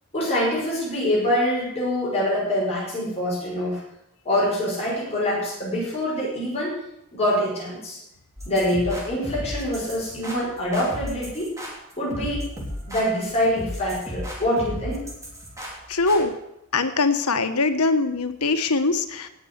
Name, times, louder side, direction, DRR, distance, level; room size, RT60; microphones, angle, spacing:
voice 1, 0.1-3.8 4.2-6.7 7.1-8.0 8.5-11.5 12.0-12.4 12.9-15.1, left 1 dB, 30° left, -6 dB, 5.8 m, -25 dB
sound 1, 8.4-16.2, equal, 15° right, 3.3 m, -35 dB
voice 2, 15.9-16.3 16.7-19.3, left 3 dB, 90° left, 9 dB, 1.3 m, -22 dB
18.0 x 6.9 x 8.1 m, 0.86 s
head